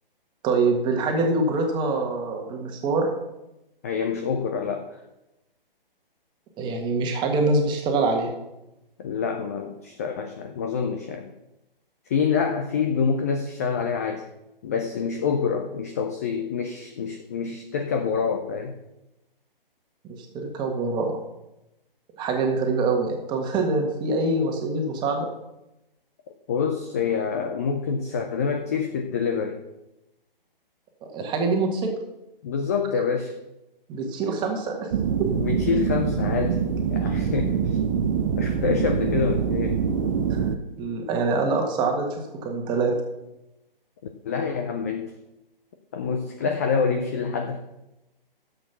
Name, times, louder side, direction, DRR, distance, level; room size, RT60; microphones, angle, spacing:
voice 1, 0.4-3.1 6.6-8.3 20.3-21.1 22.1-25.3 31.1-31.9 33.9-34.9 35.2-35.3 40.3-40.4 40.8-42.9, right 3 dB, 15° right, 3 dB, 1.6 m, -24 dB
voice 2, 3.8-5.0 9.0-11.3 12.1-14.3 14.6-18.7 26.5-29.6 32.4-33.4 35.3-36.6 36.9-37.5 38.4-39.8 44.2-45.1 45.9-47.6, left 6 dB, 15° left, 5 dB, 0.4 m, -26 dB
sound 1, 34.9-40.6, right 7 dB, 35° right, 0.8 m, -24 dB
12.0 x 7.6 x 5.8 m, 0.93 s
figure-of-eight pair, 140°, 29 cm